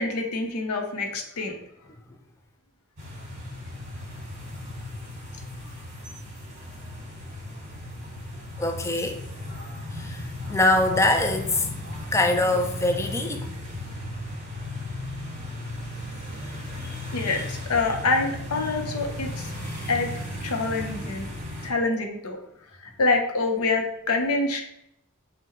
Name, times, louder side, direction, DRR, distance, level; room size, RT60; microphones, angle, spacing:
voice 1, 0.0-1.5 17.1-19.5 19.9-20.1 20.4-21.3 21.6-22.4 23.0-24.6, left 3 dB, 80° left, 4 dB, 0.7 m, -26 dB
sound 1, 3.0-21.7, left 1 dB, 35° right, 1.4 m, -36 dB
voice 2, 8.6-9.2 9.9-11.7 12.1-13.5 14.8-14.9 15.8-15.9 16.4-17.4 18.7-18.8 19.6-19.9, left 2 dB, 15° left, 4 dB, 0.4 m, -25 dB
3.7 x 2.1 x 4.1 m, 0.77 s
head